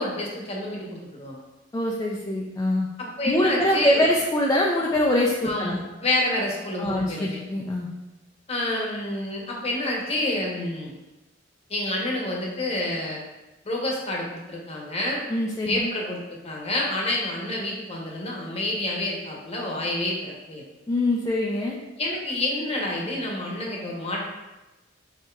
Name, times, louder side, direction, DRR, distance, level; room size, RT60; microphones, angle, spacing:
voice 1, 0.0-1.4 3.0-4.0 5.4-7.4 8.5-10.9 11.7-13.2 13.6-15.2 15.6-16.2 16.4-20.6 22.0-24.3, left 1 dB, 35° left, -2 dB, 0.9 m, -28 dB
voice 2, 1.7-2.9 3.3-5.8 6.8-7.9 15.3-15.9 20.9-21.8, left 1 dB, 15° left, -3 dB, 0.4 m, -24 dB
7.4 x 2.8 x 2.4 m, 1.1 s
head